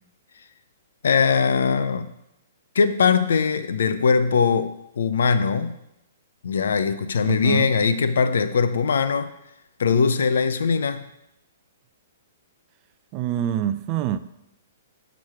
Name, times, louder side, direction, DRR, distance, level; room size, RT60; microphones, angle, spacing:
voice 1, 1.0-2.1 2.7-5.8 6.4-9.3 9.8-11.0, left 5 dB, 65° left, 0.6 m, -21 dB
voice 2, 7.3-7.7 13.1-14.2, right 10 dB, 35° right, 0.4 m, -25 dB
6.3 x 6.0 x 5.9 m
figure-of-eight pair, 115°, 0 cm